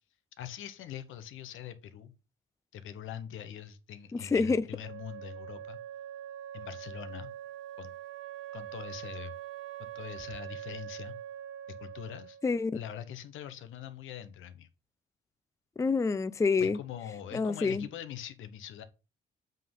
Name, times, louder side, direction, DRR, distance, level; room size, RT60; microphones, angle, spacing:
voice 1, 0.4-2.1 2.7-5.8 6.5-7.3 7.8-7.9 8.5-9.3 9.8-11.1 11.7-12.4 12.7-14.7 16.6-18.8, left 10 dB, 80° left, 1.0 m, -43 dB
voice 2, 4.1-4.6 12.4-12.8 15.8-16.8 17.3-17.8, left 4 dB, 15° left, 0.4 m, -27 dB
Wind instrument woodwind instrument, 4.8-12.5, right 11 dB, 85° right, 0.8 m, -43 dB
7.5 x 3.9 x 5.4 m
cardioid pair, 90°, 20 cm